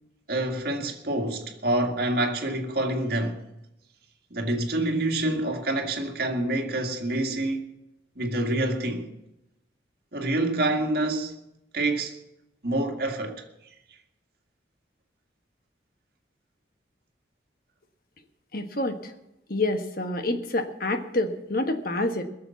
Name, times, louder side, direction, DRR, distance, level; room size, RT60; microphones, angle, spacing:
voice 1, 0.3-3.4 4.3-7.7 8.2-9.1 10.1-11.4 11.7-12.2 12.6-13.3, right 1 dB, 55° right, 2.0 m, -27 dB
voice 2, 18.5-19.1 19.5-22.2, left 2 dB, 50° left, 1.4 m, -27 dB
21.0 x 7.1 x 7.1 m
head